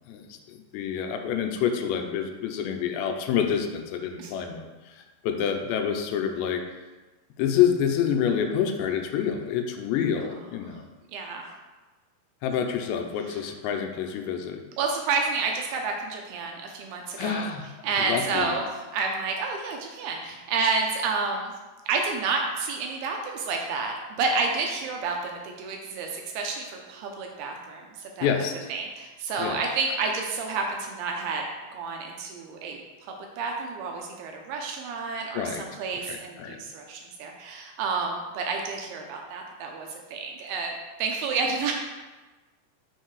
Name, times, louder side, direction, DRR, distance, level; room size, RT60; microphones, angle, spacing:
voice 1, 0.5-5.0 5.2-6.6 7.4-10.8 12.4-14.6 17.2-17.7 18.0-18.5 28.2-28.7 29.4-29.6 35.3-35.6 36.1-36.6, left 8 dB, 90° left, 5 dB, 2.9 m, -27 dB
voice 2, 11.1-11.5 13.2-13.5 14.8-17.5 17.8-21.5 21.9-31.4 31.7-40.7 41.0-41.7, right 4 dB, 80° right, 2 dB, 2.5 m, -30 dB
6.5 x 4.6 x 4.7 m, 1.2 s
omnidirectional pair, 4.9 m